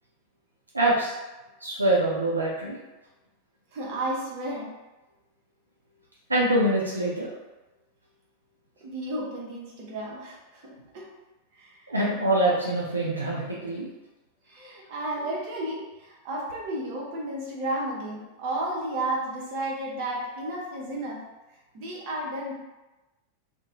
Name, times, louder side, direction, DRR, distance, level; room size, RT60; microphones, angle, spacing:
voice 1, 0.7-1.1 1.6-2.8 6.3-7.3 11.9-13.9, right 1 dB, 80° right, -4 dB, 0.4 m, -24 dB
voice 2, 3.7-4.7 8.8-11.1 11.5-11.9 14.5-21.2 21.7-22.5, right 1 dB, 45° right, -2 dB, 0.6 m, -33 dB
2.4 x 2.1 x 2.8 m, 1.1 s
figure-of-eight pair, 90°, 0 cm